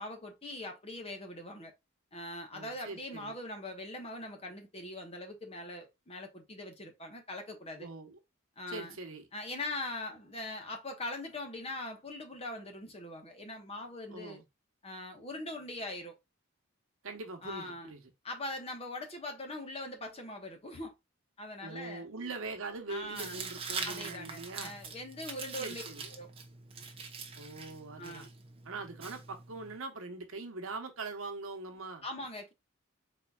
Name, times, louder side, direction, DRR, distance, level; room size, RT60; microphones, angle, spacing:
voice 1, 0.0-1.7 2.1-7.9 8.6-8.9 9.3-14.4 14.8-16.1 17.4-17.9 18.2-20.9 21.4-22.0 22.9-23.4 23.8-25.8 26.2-26.3 28.0-28.3 32.0-32.5, left 2 dB, 30° left, 1.2 m, -41 dB
voice 2, 2.5-3.3 7.8-8.2 8.7-9.2 14.1-14.4 17.0-18.1 21.6-24.8 25.6-26.1 27.3-28.3 28.6-32.0, right 3 dB, 70° right, 1.1 m, -42 dB
Tearing, 23.1-29.8, right 5 dB, 25° right, 0.9 m, -43 dB
4.3 x 4.1 x 2.3 m
head